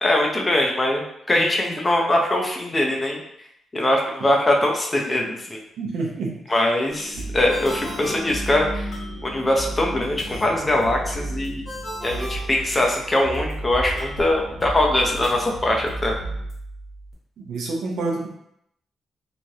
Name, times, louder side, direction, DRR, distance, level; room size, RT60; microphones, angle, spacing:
voice 1, 0.0-3.2 3.7-5.6 6.5-8.9 9.2-11.6 12.0-16.2, left 1 dB, 15° left, 0 dB, 0.4 m, -22 dB
voice 2, 5.8-6.3 17.5-18.3, right 3 dB, 75° right, -1 dB, 0.6 m, -27 dB
sound 1, 6.9-16.5, left 1 dB, 75° left, 1.2 m, -39 dB
sound 2, 7.1-17.1, right 2 dB, 40° left, 0.8 m, -34 dB
Ringtone, 7.5-9.2 11.7-13.3, equal, 5° right, 0.8 m, -37 dB
3.1 x 2.4 x 2.7 m, 0.74 s
wide cardioid pair, 175°, 0 cm